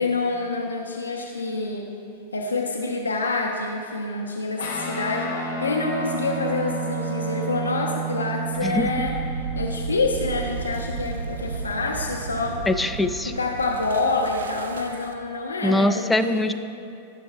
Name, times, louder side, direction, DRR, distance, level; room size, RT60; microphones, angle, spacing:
voice 1, 0.0-1.9 2.3-12.6 13.3-16.5, left 3 dB, 80° left, 1 dB, 0.6 m, -27 dB
Guitar, 4.6-13.3, right 4 dB, 60° left, 1.8 m, -32 dB
sound 1, 8.5-15.3, right 4 dB, 70° right, 0.4 m, -34 dB
voice 2, 12.7-13.3 15.6-16.5, left 1 dB, 10° left, 9 dB, 0.4 m, -22 dB
14.0 x 5.9 x 2.6 m, 2.6 s
figure-of-eight pair, 95°, 0 cm